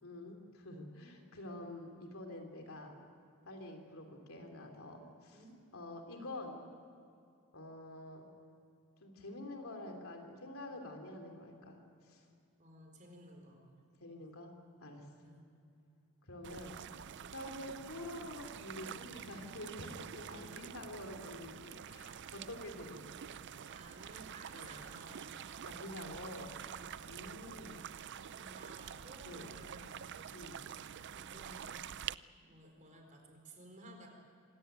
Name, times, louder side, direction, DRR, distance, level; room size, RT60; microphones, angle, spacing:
voice 1, 0.0-2.9 3.4-5.4 5.7-6.6 7.5-8.3 9.0-11.8 12.1-12.2 14.0-14.5 14.8-15.1 16.3-16.8 17.3-23.0 23.2-23.3 24.5-24.7 25.6-26.5 27.1-27.8 29.2-29.5 30.3-30.6, left 1 dB, 65° left, 3 dB, 3.5 m, -47 dB
voice 2, 12.6-13.7 15.2-15.4 20.1-20.6 23.7-25.3 27.2-27.6 28.3-30.1 30.6-31.8 32.4-34.1, right 1 dB, 35° right, 3 dB, 4.3 m, -56 dB
sound 1, 16.4-32.1, right 8 dB, 50° right, 0.5 m, -47 dB
26.0 x 17.0 x 9.3 m, 2.5 s
head